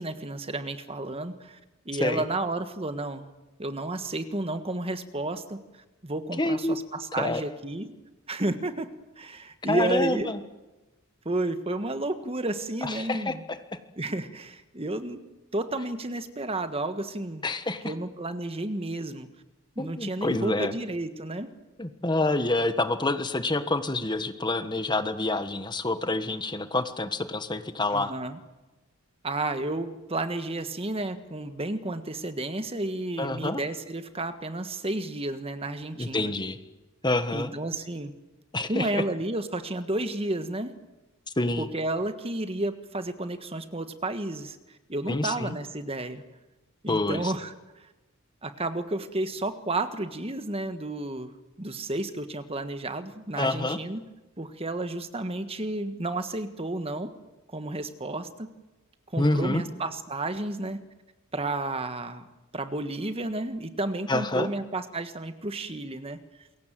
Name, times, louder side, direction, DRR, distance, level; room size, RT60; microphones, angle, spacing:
voice 1, 0.0-1.6 1.8-3.3 3.6-7.9 8.3-8.9 9.2-10.3 11.2-13.4 14.0-15.2 15.5-17.4 17.8-19.3 19.7-21.5 27.9-28.4 29.2-36.3 37.3-38.1 38.7-40.7 41.6-44.6 44.9-46.2 46.8-47.5 47.8-47.9 48.4-51.3 51.6-54.0 54.4-57.1 57.5-58.5 59.1-60.8 61.3-62.2 62.5-66.2, right 2 dB, 25° right, 9 dB, 1.6 m, -32 dB
voice 2, 6.4-6.8 7.2-7.4 9.7-10.4 12.8-13.6 17.4-17.9 19.8-20.7 21.8-28.1 33.2-33.6 36.0-36.6 37.0-37.5 38.5-39.0 41.4-41.7 45.1-45.6 46.9-47.3 53.4-53.8 59.2-59.6 64.1-64.5, left 2 dB, 20° left, 9 dB, 1.4 m, -27 dB
28.0 x 22.5 x 7.7 m, 1.1 s
head